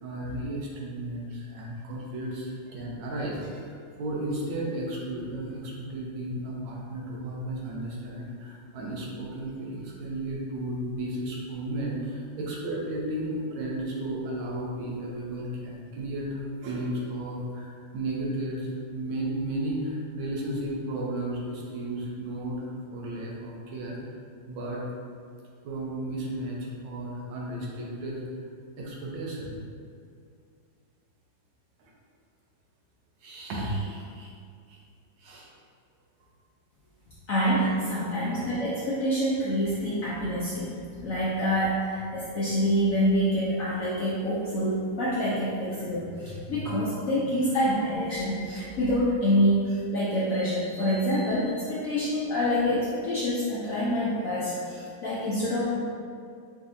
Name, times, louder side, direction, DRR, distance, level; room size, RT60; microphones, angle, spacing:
voice 1, 0.0-24.1 24.5-24.8 25.6-28.2 28.8-29.6 31.8-31.9 33.2-34.3 34.7-34.8 35.2-35.5 38.0-38.2, right 1 dB, 85° right, -3 dB, 1.6 m, -34 dB
voice 2, 37.3-55.8, equal, 75° left, -8 dB, 0.7 m, -26 dB
5.2 x 2.7 x 2.6 m, 2.3 s
omnidirectional pair, 2.1 m